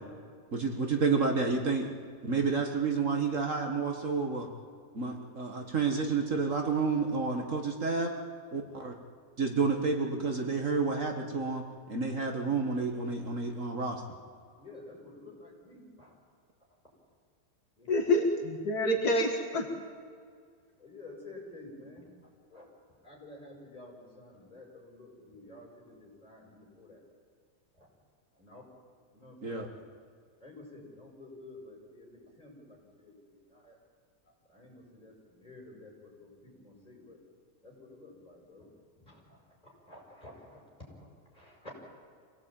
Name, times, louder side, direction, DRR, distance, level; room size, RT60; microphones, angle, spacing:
voice 1, 0.5-1.9 2.2-4.5 4.9-8.1 8.5-9.0 9.4-11.6 11.9-14.0 29.4-29.7, right 4 dB, 50° right, 3 dB, 2.1 m, -30 dB
voice 2, 14.6-16.1 17.8-18.0 20.8-22.1 22.5-22.7 23.0-27.0 27.7-27.9 28.4-28.6 29.1-29.8 30.4-33.8 34.5-37.2 37.6-38.7 39.0-41.7, left 2 dB, 25° left, -2 dB, 7.1 m, -51 dB
voice 3, 17.9-19.7, left 1 dB, 65° left, 2 dB, 2.5 m, -27 dB
26.0 x 17.5 x 9.0 m, 2.1 s
omnidirectional pair, 1.8 m